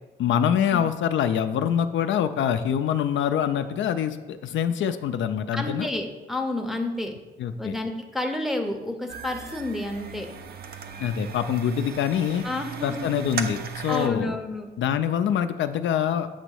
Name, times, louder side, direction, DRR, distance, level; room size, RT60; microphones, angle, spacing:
voice 1, 0.2-5.9 7.4-7.8 11.0-12.4 12.8-14.4 14.8-16.3, left 9 dB, 70° left, 9 dB, 0.4 m, -25 dB
voice 2, 5.5-7.1 7.6-10.3 12.4-13.3 13.9-14.7, left 2 dB, ahead, 2 dB, 0.6 m, -30 dB
sound 1, 9.1-14.1, right 5 dB, 50° right, 0.5 m, -36 dB
8.1 x 3.0 x 6.3 m, 1.2 s
wide cardioid pair, 160°, 20 cm